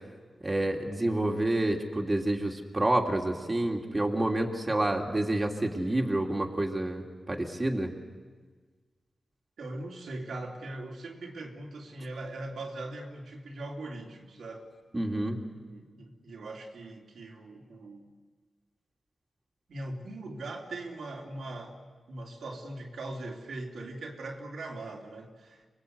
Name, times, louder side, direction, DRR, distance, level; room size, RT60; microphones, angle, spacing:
voice 1, 0.4-7.9 14.9-15.4, right 1 dB, 30° right, 2 dB, 2.8 m, -28 dB
voice 2, 9.6-14.7 15.6-18.0 19.7-21.8 22.1-25.7, right 2 dB, 85° right, 0 dB, 3.5 m, -40 dB
26.5 x 21.0 x 8.2 m, 1.4 s
cardioid pair, 65°, 0 cm